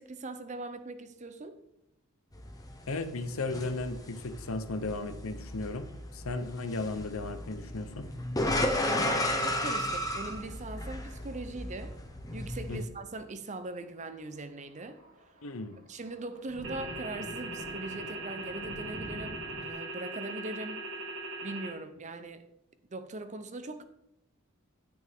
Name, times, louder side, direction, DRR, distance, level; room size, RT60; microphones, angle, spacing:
voice 1, 0.0-1.6 8.8-12.0 12.3-15.0 15.9-20.9 21.4-22.4 22.9-23.8, right 2 dB, 30° right, 0.6 m, -41 dB
sound 1, 2.3-12.8, left 1 dB, 15° left, 0.9 m, -34 dB
voice 2, 2.9-5.9 6.1-8.1 12.7-12.8 15.4-15.8, left 3 dB, 65° left, 0.8 m, -35 dB
Thunder, 11.7-12.1 12.4-12.5 13.5-19.7, equal, 75° right, 2.5 m, -47 dB
sound 2, 16.6-21.7, right 2 dB, 55° right, 1.6 m, -40 dB
9.4 x 8.9 x 3.5 m
head